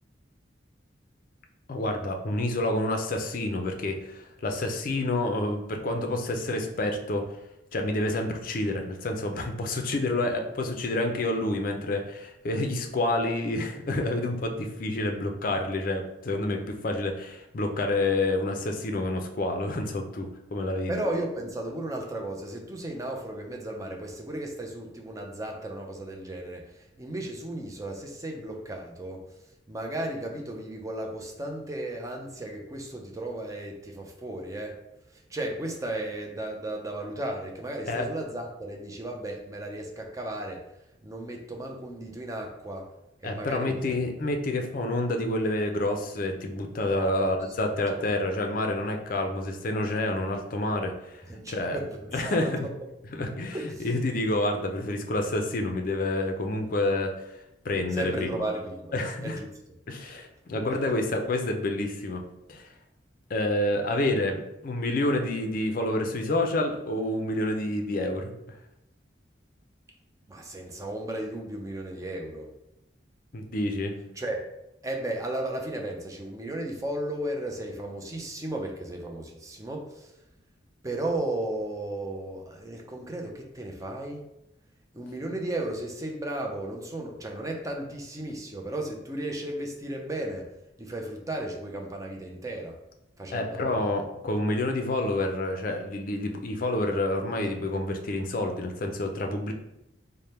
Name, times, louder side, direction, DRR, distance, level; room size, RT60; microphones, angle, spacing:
voice 1, 1.7-7.3 7.7-21.0 37.9-38.1 43.2-51.8 52.1-52.7 53.1-53.6 53.8-57.4 57.6-58.5 58.9-59.4 59.9-62.7 63.3-68.3 73.3-74.0 93.3-99.5, left 1 dB, 45° left, 4 dB, 0.4 m, -28 dB
voice 2, 20.9-29.2 29.7-34.8 35.1-40.7 41.0-42.9 43.2-44.0 46.9-47.3 47.9-48.1 51.3-52.0 52.2-52.5 53.5-53.9 57.9-58.9 59.2-59.5 60.5-60.6 70.3-72.5 74.2-74.5 74.8-80.1 80.8-84.2 84.9-90.5 90.8-92.8 93.2-93.9, right 1 dB, 15° right, 1 dB, 0.5 m, -35 dB
3.4 x 2.1 x 4.2 m, 0.86 s
head